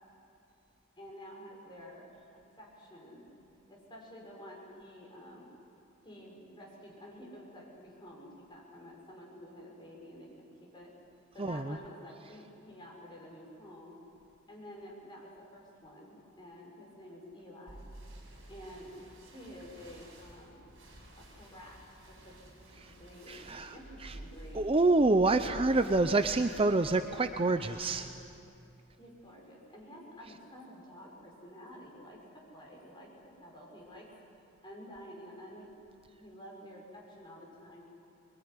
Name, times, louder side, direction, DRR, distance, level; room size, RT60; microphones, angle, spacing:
voice 1, 1.0-2.1 2.6-3.3 3.7-5.5 6.0-10.9 11.3-14.0 14.5-17.8 18.5-18.9 19.3-20.7 21.2-22.7 23.0-24.8 25.9-26.3 27.9-28.1 29.0-34.1 34.6-35.7 36.2-37.8, equal, 20° left, -3 dB, 6.7 m, -50 dB
voice 2, 11.4-11.8 22.8-22.9 23.3-23.7 24.0-24.1 24.5-28.1, right 2 dB, 25° right, 8 dB, 0.6 m, -27 dB
sound 1, 17.7-28.4, right 1 dB, 60° right, 7.3 m, -51 dB
23.5 x 22.5 x 9.8 m, 2.7 s
head